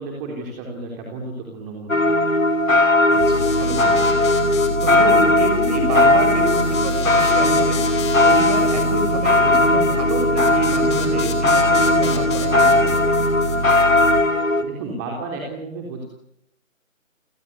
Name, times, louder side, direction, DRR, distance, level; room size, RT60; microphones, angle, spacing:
voice 1, 0.0-2.4 14.6-16.0, right 3 dB, 15° right, 0 dB, 3.5 m, -32 dB
sound 1, 1.9-14.6, left 2 dB, 70° left, 4.1 m, -18 dB
sound 2, 3.1-14.1, left 8 dB, 20° left, 3.0 m, -35 dB
voice 2, 3.1-4.1 4.8-7.8 8.2-13.0, right 2 dB, 30° right, 7 dB, 6.6 m, -28 dB
sound 3, 3.2-14.2, right 1 dB, 80° right, 5.8 m, -27 dB
30.0 x 17.0 x 9.6 m, 0.77 s
figure-of-eight pair, 160°, 41 cm